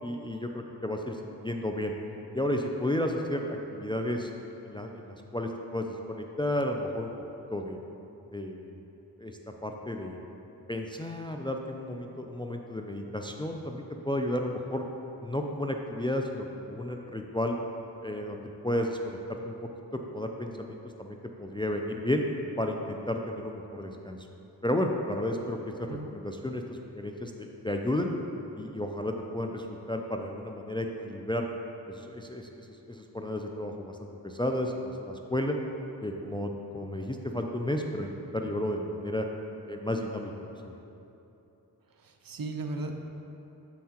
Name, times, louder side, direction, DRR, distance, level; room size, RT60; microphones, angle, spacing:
voice 1, 0.0-1.9 2.3-4.3 4.6-7.1 7.5-7.8 8.3-8.8 9.2-10.2 10.7-14.8 15.2-17.6 18.0-19.6 20.1-22.2 22.6-24.2 24.6-28.1 28.6-31.5 31.9-35.6 36.0-39.3 39.6-40.3 40.6-40.8, left 1 dB, 15° left, 3 dB, 0.4 m, -32 dB
voice 2, 42.0-42.9, right 2 dB, 60° right, 4 dB, 0.6 m, -36 dB
7.3 x 5.7 x 2.9 m, 2.9 s
cardioid pair, 45°, 40 cm